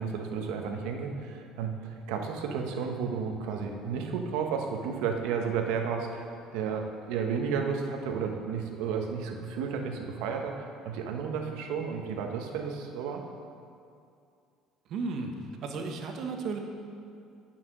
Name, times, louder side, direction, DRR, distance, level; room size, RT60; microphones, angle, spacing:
voice 1, 0.0-6.2 6.5-13.2, right 6 dB, 85° right, 3 dB, 1.1 m, -32 dB
voice 2, 14.9-15.3 15.6-16.6, right 4 dB, 60° right, 3 dB, 1.2 m, -34 dB
10.0 x 6.0 x 6.0 m, 2.4 s
cardioid pair, 125°, 0 cm